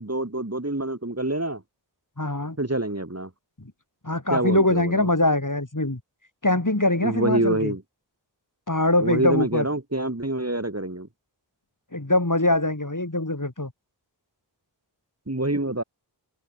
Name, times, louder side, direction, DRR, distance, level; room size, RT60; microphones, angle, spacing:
voice 1, 0.0-1.6 2.6-3.3 4.3-5.1 7.0-7.8 9.0-11.1 15.3-15.8, right 2 dB, 35° right, 3.4 m, -26 dB
voice 2, 2.2-2.6 3.6-3.7 4.0-6.0 6.4-7.7 8.7-9.7 11.9-13.7, left 2 dB, 45° left, 7.0 m, -23 dB
wide cardioid pair, 40°, 43 cm